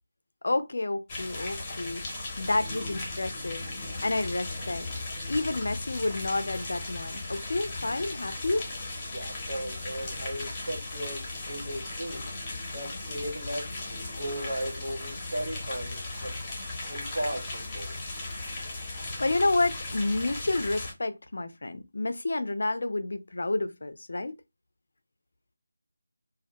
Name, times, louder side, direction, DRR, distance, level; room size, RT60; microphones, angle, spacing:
voice 1, 0.4-3.6 4.0-4.9 5.3-8.6 19.2-24.4, left 2 dB, 60° left, 0.4 m, -30 dB
sound 1, 1.1-20.9, left 2 dB, 20° left, 0.7 m, -37 dB
voice 2, 9.1-12.2 12.7-16.3 16.9-17.9, right 1 dB, 60° right, 1.2 m, -36 dB
2.2 x 2.1 x 2.6 m
figure-of-eight pair, 160°, 0 cm